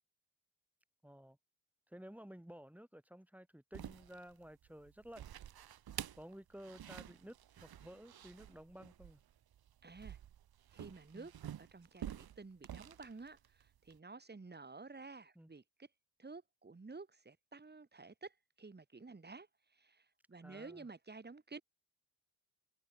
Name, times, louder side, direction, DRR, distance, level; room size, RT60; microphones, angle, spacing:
voice 1, 1.0-1.4 1.9-5.2 6.1-9.2 11.1-11.3 15.3-15.5 20.4-20.9, equal, 5° right, 1.6 m, -54 dB
sound 1, 3.7-14.0, right 10 dB, 50° right, 1.2 m, -50 dB
voice 2, 9.8-10.2 10.7-11.3 11.6-15.9 16.2-19.5 19.7-21.6, right 3 dB, 20° right, 2.2 m, -52 dB
hypercardioid pair, 50°, 46 cm